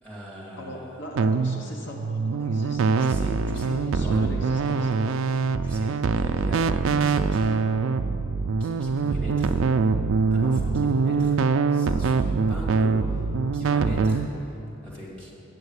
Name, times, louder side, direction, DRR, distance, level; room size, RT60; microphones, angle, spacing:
voice 1, 0.0-1.0 3.0-4.3 4.6-4.7 5.0-7.7 8.6-9.6 10.3-11.4 11.7-13.2 13.5-15.4, equal, 5° left, -6 dB, 2.2 m, -40 dB
voice 2, 0.5-2.8 3.5-4.9 11.1-11.4, equal, 55° left, -1 dB, 1.2 m, -39 dB
sound 1, 1.2-14.3, right 4 dB, 65° right, 0.3 m, -23 dB
8.8 x 7.0 x 8.1 m, 3.0 s
head